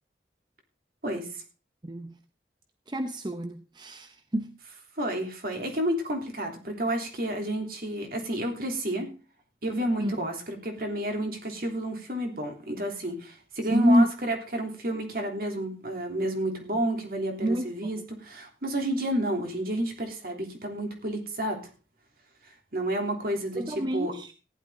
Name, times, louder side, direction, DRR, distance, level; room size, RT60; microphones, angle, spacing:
voice 1, 1.0-1.4 4.9-9.1 9.6-21.6 22.7-24.1, right 1 dB, 55° right, 3.3 m, -30 dB
voice 2, 1.8-2.2 2.9-4.5 10.0-10.1 13.7-14.1 17.4-17.7 23.6-24.3, equal, 25° right, 0.7 m, -26 dB
15.0 x 12.0 x 3.8 m
head